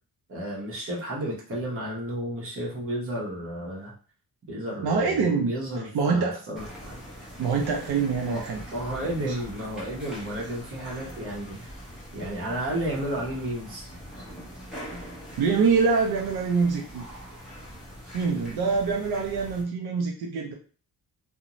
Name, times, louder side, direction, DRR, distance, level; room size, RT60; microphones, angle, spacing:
voice 1, 0.3-3.9 4.5-7.0 8.2-8.5 8.7-11.6 12.1-13.8, right 1 dB, 35° right, -3 dB, 0.8 m, -32 dB
voice 2, 4.8-5.5 5.9-6.4 7.4-8.6 9.3-9.4 15.4-17.1 18.1-20.5, right 5 dB, 75° right, 0 dB, 0.5 m, -25 dB
sound 1, 6.6-19.6, equal, ahead, 0.8 m, -42 dB
2.5 x 2.1 x 2.9 m, 0.41 s
wide cardioid pair, 170°, 39 cm